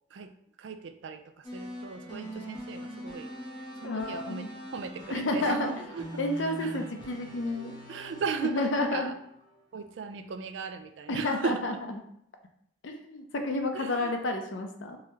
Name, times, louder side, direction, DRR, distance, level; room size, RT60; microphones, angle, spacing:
voice 1, 0.6-3.3 3.8-6.9 7.9-9.1 9.7-11.9 13.7-14.2, right 5 dB, 75° right, 8 dB, 0.4 m, -37 dB
sound 1, 1.4-9.6, equal, 25° left, 1.3 m, -43 dB
voice 2, 3.8-4.6 5.1-5.7 6.2-7.7 8.4-9.1 11.1-11.7 12.8-15.0, left 2 dB, 80° left, 5 dB, 0.6 m, -30 dB
3.9 x 2.7 x 3.1 m, 0.74 s
head